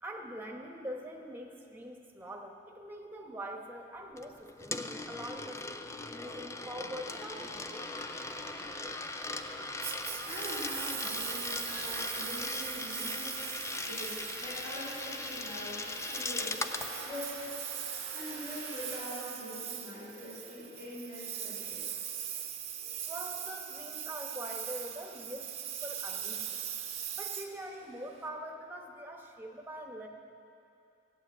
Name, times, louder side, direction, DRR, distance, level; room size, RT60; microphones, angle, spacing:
voice 1, 0.0-8.1 23.1-25.5 25.8-26.6 27.1-30.1, equal, 10° right, 1 dB, 1.3 m, -43 dB
Coin (dropping), 4.2-16.9, left 3 dB, 15° left, 0.4 m, -39 dB
sound 1, 6.3-19.0, equal, 85° left, 4.6 m, -47 dB
Engine, 9.8-28.3, right 9 dB, 35° right, 0.9 m, -41 dB
voice 2, 10.2-13.4 13.8-17.4 18.1-21.8, left 1 dB, 50° left, -10 dB, 4.6 m, -43 dB
15.5 x 9.6 x 7.5 m, 2.6 s
head